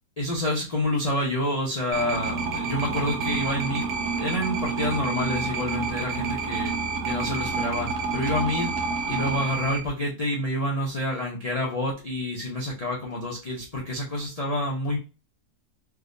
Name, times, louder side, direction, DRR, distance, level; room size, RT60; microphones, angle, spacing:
voice 1, 0.2-3.9 4.2-6.7 7.1-8.7 9.1-15.0, left 1 dB, 60° left, -3 dB, 0.4 m, -28 dB
sound 1, 1.9-9.8, right 4 dB, 85° right, 1.2 m, -29 dB
3.4 x 2.7 x 2.5 m, 0.33 s
omnidirectional pair, 1.7 m